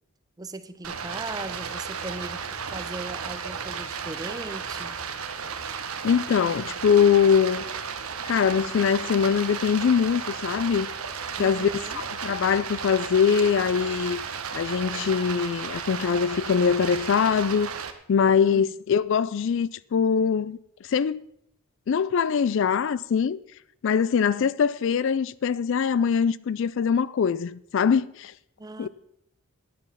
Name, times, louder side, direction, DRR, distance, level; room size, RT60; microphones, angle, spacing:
voice 1, 0.4-5.0 11.4-12.0 18.5-18.6 28.6-28.9, right 2 dB, 15° right, 0.5 m, -38 dB
Stream, 0.8-17.9, right 6 dB, 80° right, 1.0 m, -34 dB
voice 2, 6.0-7.6 8.3-10.9 11.4-11.7 12.0-14.2 14.5-17.7 18.1-20.6 20.9-21.2 21.9-23.4 23.8-28.3 28.8-28.9, left 7 dB, 60° left, 0.3 m, -23 dB
10.0 x 9.1 x 5.6 m
head